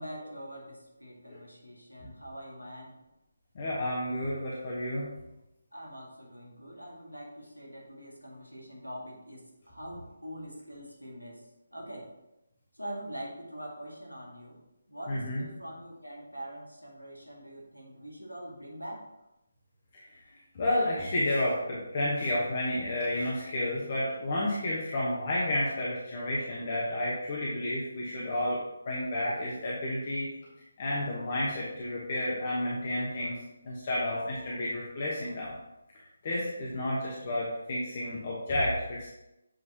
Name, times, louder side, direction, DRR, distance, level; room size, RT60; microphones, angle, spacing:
voice 1, 0.0-3.0 5.7-12.1 12.7-19.1, equal, 90° left, -2 dB, 1.8 m, -44 dB
voice 2, 3.5-5.1 15.1-15.4 19.9-20.0 20.5-28.6 28.8-30.3 30.8-33.3 33.6-35.5 36.2-39.1, left 1 dB, 35° left, -6 dB, 1.2 m, -31 dB
7.6 x 4.7 x 2.9 m, 0.90 s
figure-of-eight pair, 150°, 0 cm